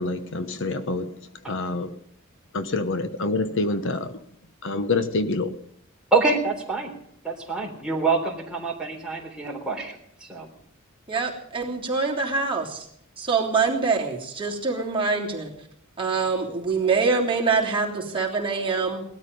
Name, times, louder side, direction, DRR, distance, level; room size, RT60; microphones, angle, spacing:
voice 1, 0.0-2.0 2.5-4.2 4.6-5.6, left 3 dB, 60° left, 1.0 m, -27 dB
voice 2, 6.1-6.9 7.5-10.5, right 3 dB, 5° right, 3.6 m, -26 dB
voice 3, 11.1-12.9 13.2-15.5 16.0-19.0, right 4 dB, 25° right, 3.2 m, -25 dB
19.0 x 13.0 x 5.4 m
head